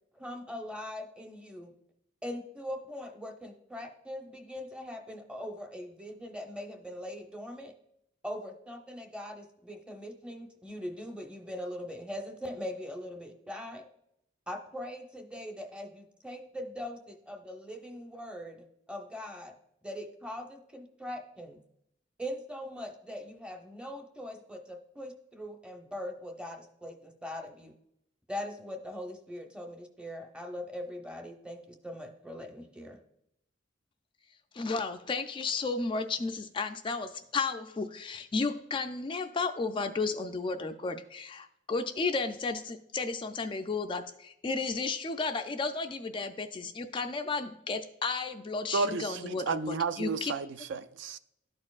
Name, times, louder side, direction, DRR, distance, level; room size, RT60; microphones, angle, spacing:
voice 1, 0.1-1.7 2.2-7.7 8.2-13.9 14.5-19.5 19.8-21.6 22.2-27.7 28.3-33.0, left 1 dB, 5° right, 0.7 m, -41 dB
voice 2, 34.5-50.3, left 4 dB, 25° left, 0.3 m, -33 dB
voice 3, 48.7-51.2, right 4 dB, 65° right, 0.4 m, -32 dB
12.5 x 4.3 x 2.4 m
head